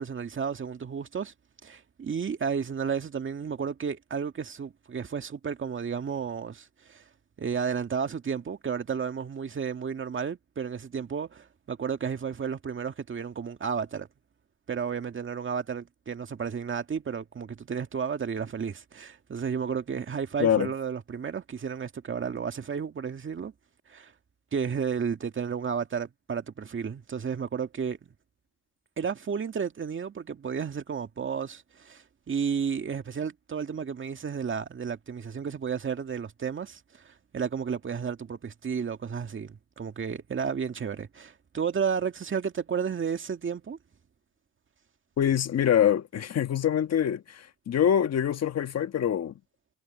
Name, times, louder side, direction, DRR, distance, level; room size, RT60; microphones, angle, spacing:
voice 1, 0.0-1.3 1.6-7.0 7.4-14.1 14.7-23.5 23.9-24.1 24.5-28.0 29.0-43.8, right 6 dB, 40° right, 2.1 m, -32 dB
voice 2, 45.2-49.3, left 9 dB, 55° left, 1.5 m, -25 dB
cardioid pair, 90°, 30 cm